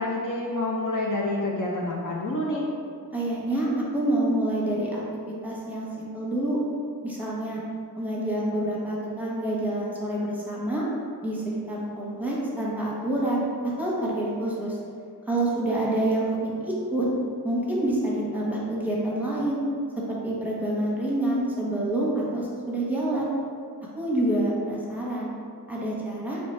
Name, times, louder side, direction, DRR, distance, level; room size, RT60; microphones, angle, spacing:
voice 1, 0.0-2.7, left 2 dB, 50° left, -4 dB, 0.7 m, -28 dB
voice 2, 3.1-5.0 5.4-6.6 7.0-7.6 8.0-10.8 11.2-13.5 13.8-14.8 15.3-17.1 17.4-19.6 20.2-23.3 24.0-25.3 25.7-26.4, right 1 dB, 5° right, -6 dB, 1.1 m, -27 dB
4.0 x 3.3 x 3.3 m, 2.3 s
cardioid pair, 50°, 39 cm